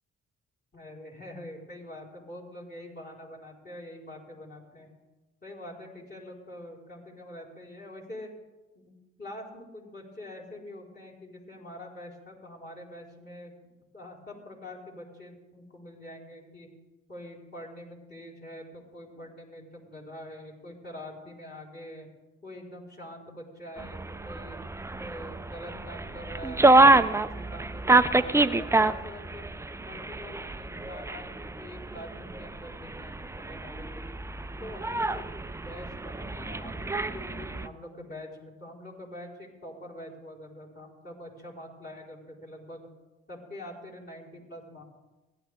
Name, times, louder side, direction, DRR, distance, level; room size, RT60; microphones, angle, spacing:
voice 1, 0.7-4.9 5.4-8.3 8.7-13.6 13.9-16.7 17.1-22.1 22.4-24.6 25.0-34.0 34.6-42.9 43.3-44.8, left 1 dB, 30° left, -5 dB, 4.9 m, -45 dB
sound 1, 23.8-37.7, right 2 dB, 10° right, 0.4 m, -27 dB
16.5 x 11.5 x 3.7 m, 1.1 s
hypercardioid pair, 55°, 34 cm